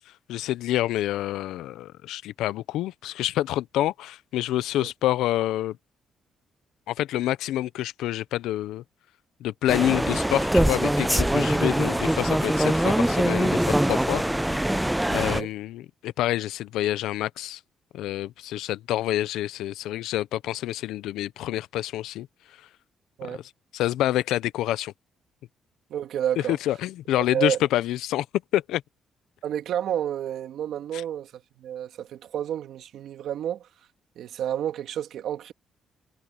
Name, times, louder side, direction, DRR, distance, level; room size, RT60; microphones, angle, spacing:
voice 1, 0.3-5.8 6.9-8.8 9.4-14.2 15.1-17.6 17.9-22.3 23.3-23.4 23.7-24.9 26.5-28.3 28.5-28.8 30.9-31.0, left 14 dB, 90° left, 0.7 m, -27 dB
sound 1, 9.7-15.4, right 1 dB, 5° right, 0.5 m, -23 dB
voice 2, 15.1-15.5 23.2-23.4 25.9-26.6 27.3-27.6 29.4-33.7 34.2-35.5, right 10 dB, 75° right, 2.4 m, -30 dB
cardioid pair, 90°, 0 cm